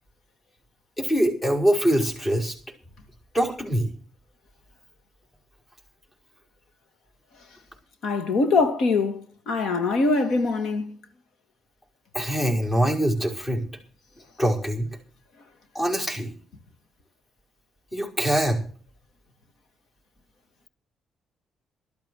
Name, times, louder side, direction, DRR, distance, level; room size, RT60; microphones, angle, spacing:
voice 1, 1.0-2.5 3.3-3.9 12.1-13.7 14.4-14.9 15.8-16.3 17.9-18.6, right 1 dB, 25° left, 5.3 m, -23 dB
voice 2, 8.0-10.9, left 3 dB, 75° left, 2.3 m, -23 dB
12.5 x 12.5 x 6.4 m
cardioid pair, 90°, 0 cm